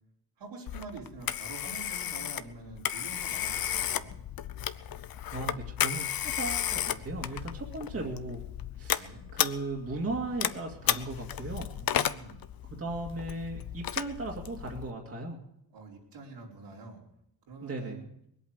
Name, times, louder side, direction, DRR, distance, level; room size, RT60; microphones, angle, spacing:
voice 1, 0.4-4.2 7.9-8.2 8.9-9.2 11.7-12.4 15.7-17.0 17.5-18.1, right 3 dB, 85° right, -2 dB, 4.5 m, -46 dB
Telephone, 0.7-14.9, left 10 dB, 55° left, 0.7 m, -34 dB
voice 2, 5.3-8.4 8.8-11.7 12.7-15.4 17.6-18.0, right 2 dB, 35° right, 0 dB, 2.2 m, -37 dB
21.0 x 8.4 x 8.1 m, 0.77 s
wide cardioid pair, 140°, 41 cm